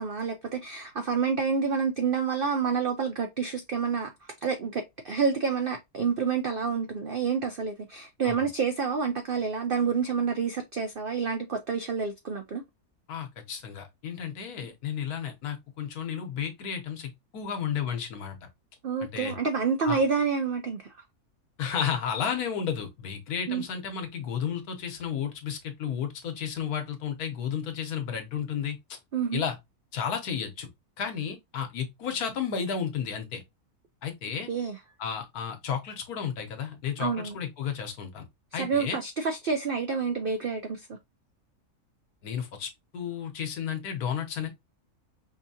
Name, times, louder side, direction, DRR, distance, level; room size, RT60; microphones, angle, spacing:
voice 1, 0.0-4.1 4.4-12.6 18.8-20.8 23.5-23.6 29.1-29.4 34.5-34.8 37.0-37.4 38.5-41.0, right 5 dB, 70° right, 0.5 m, -28 dB
voice 2, 13.1-18.5 19.0-19.3 19.8-20.0 21.6-28.8 29.3-29.5 29.9-30.7 31.0-33.4 34.0-34.5 35.0-38.2 38.5-39.0 42.2-44.5, left 7 dB, 75° left, 1.3 m, -32 dB
4.8 x 2.7 x 2.7 m
omnidirectional pair, 1.6 m